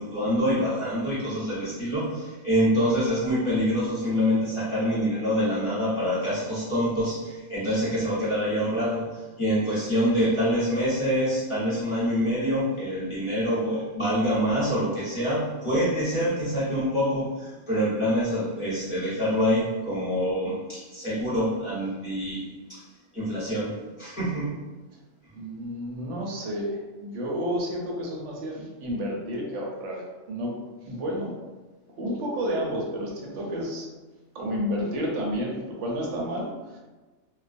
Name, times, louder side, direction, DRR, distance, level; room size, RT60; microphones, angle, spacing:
voice 1, 0.0-22.8 23.1-24.6, equal, 30° left, -11 dB, 0.8 m, -26 dB
voice 2, 25.3-30.5 30.9-31.3 32.0-33.9 34.3-36.8, equal, 75° right, -2 dB, 0.9 m, -31 dB
2.3 x 2.2 x 2.4 m, 1.2 s
omnidirectional pair, 1.2 m